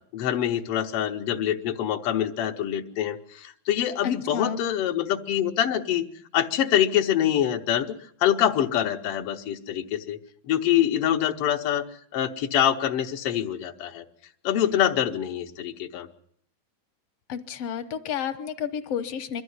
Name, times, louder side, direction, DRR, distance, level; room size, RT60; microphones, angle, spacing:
voice 1, 0.1-6.0 6.3-10.2 10.5-11.8 12.1-14.0 14.4-16.1, left 10 dB, 85° left, 2 dB, 1.3 m, -25 dB
voice 2, 4.0-4.6 17.3-19.4, left 8 dB, 70° left, 8 dB, 1.4 m, -31 dB
22.5 x 13.5 x 9.5 m, 0.67 s
omnidirectional pair, 4.0 m